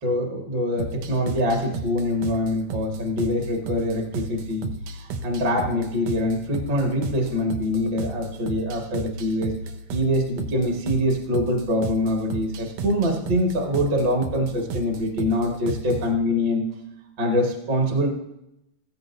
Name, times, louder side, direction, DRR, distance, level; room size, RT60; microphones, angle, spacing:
voice 1, 0.0-9.5 9.9-16.7 17.2-18.1, left 1 dB, 40° right, 1 dB, 2.0 m, -24 dB
sound 1, 0.8-16.1, right 3 dB, 75° right, 1.5 m, -33 dB
15.0 x 14.5 x 2.6 m, 0.85 s
omnidirectional pair, 4.0 m